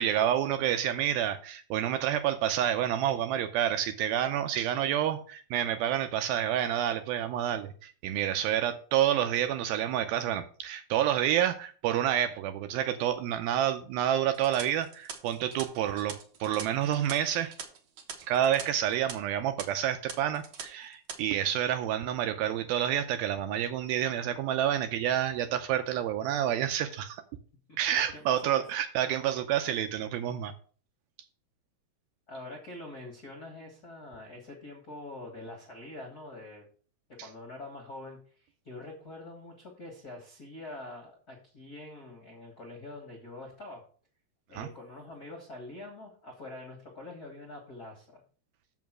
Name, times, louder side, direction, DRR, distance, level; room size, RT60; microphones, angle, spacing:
voice 1, 0.0-17.5 18.2-27.2 27.8-30.5 44.6-44.7, right 10 dB, 85° right, 8 dB, 2.2 m, -29 dB
sound 1, 14.3-18.6 18.9-19.1 19.6-19.7 20.1-20.6 20.9-21.2, right 7 dB, 60° right, 1.8 m, -42 dB
voice 2, 27.7-28.2 28.5-28.6 32.3-36.7 37.2-43.8 44.5-48.2, left 2 dB, 75° left, 1 dB, 0.8 m, -45 dB
7.3 x 5.8 x 6.1 m, 0.42 s
omnidirectional pair, 4.7 m